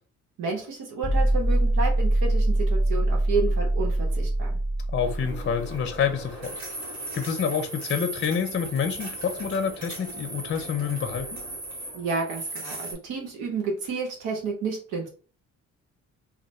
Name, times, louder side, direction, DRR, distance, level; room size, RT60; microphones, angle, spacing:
voice 1, 0.4-4.6 11.9-15.1, right 4 dB, 85° right, 1.1 m, -30 dB
sound 1, 1.0-6.1, right 1 dB, 30° right, 0.8 m, -24 dB
voice 2, 4.9-6.6 7.1-11.4, left 7 dB, 35° left, 0.6 m, -28 dB
sound 2, 5.0-12.9, right 2 dB, 65° right, 1.7 m, -37 dB
3.2 x 2.3 x 4.1 m
cardioid pair, 90°, 30 cm